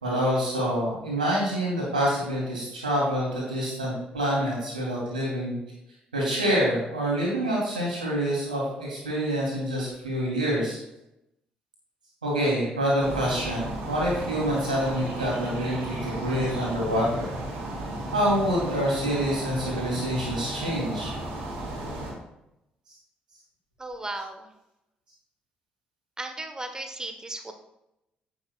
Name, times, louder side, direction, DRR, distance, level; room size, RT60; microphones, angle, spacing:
voice 1, 0.0-5.6 6.1-10.8 12.2-17.3 18.1-21.1, equal, 85° right, -4 dB, 3.0 m, -26 dB
sound 1, 13.0-22.1, right 1 dB, 65° right, 3.6 m, -34 dB
voice 2, 23.8-24.5 26.2-27.5, right 2 dB, 15° right, 6 dB, 1.3 m, -35 dB
16.0 x 7.0 x 2.4 m, 0.87 s
figure-of-eight pair, 45°, 4 cm